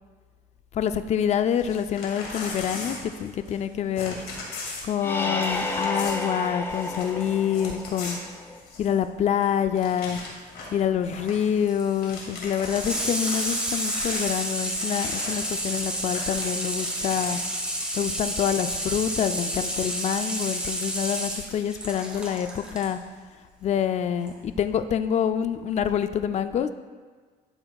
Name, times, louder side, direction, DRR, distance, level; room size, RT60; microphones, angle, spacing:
voice 1, 0.7-4.2 4.8-8.2 8.8-10.2 10.7-17.4 17.9-23.0 23.6-26.7, left 9 dB, 40° left, 10 dB, 0.4 m, -26 dB
Crumpling crinkling / Tearing, 1.5-3.7 3.9-9.0 9.4-9.5 9.7-10.8 11.1-11.4 11.8-17.6 18.4-20.0, left 3 dB, 70° left, 2.2 m, -39 dB
sound 1, 5.0-8.6, left 2 dB, 15° left, 0.8 m, -31 dB
Water tap faucet / Sink (filling or washing), 11.1-22.9 24.2-24.3, right 1 dB, 5° right, 1.4 m, -30 dB
11.5 x 7.8 x 2.3 m, 1.5 s
cardioid pair, 115°, 17 cm